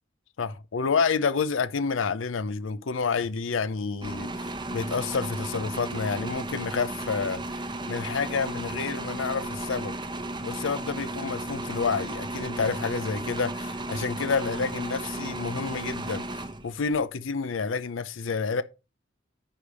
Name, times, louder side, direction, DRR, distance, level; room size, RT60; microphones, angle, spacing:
voice 1, 0.4-7.4 7.9-10.0 10.4-18.6, left 5 dB, 70° left, 0.5 m, -29 dB
sound 1, 4.0-17.0, right 2 dB, 20° right, 0.8 m, -34 dB
9.9 x 3.4 x 6.2 m
head